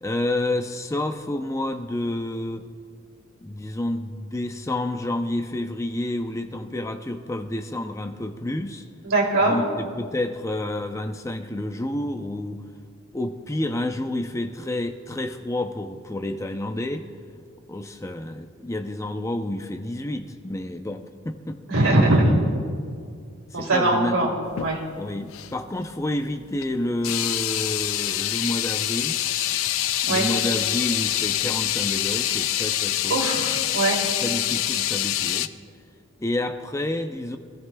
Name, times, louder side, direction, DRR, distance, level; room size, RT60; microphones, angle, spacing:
voice 1, 0.0-2.6 3.4-8.8 9.4-12.6 13.1-17.0 17.7-21.6 23.5-24.4 25.0-29.2 30.0-33.2 34.2-35.5 36.2-37.4, left 1 dB, 15° left, 7 dB, 0.5 m, -29 dB
voice 2, 9.0-9.6 21.7-22.3 23.5-24.3 24.6-24.8 30.1-30.3 33.1-34.1, right 2 dB, 85° right, -1 dB, 2.7 m, -21 dB
sound 1, 24.5-24.8 25.3-25.5 26.6-26.7 27.0-35.5, left 12 dB, 75° left, 0.4 m, -25 dB
23.5 x 14.5 x 2.3 m, 2.2 s
head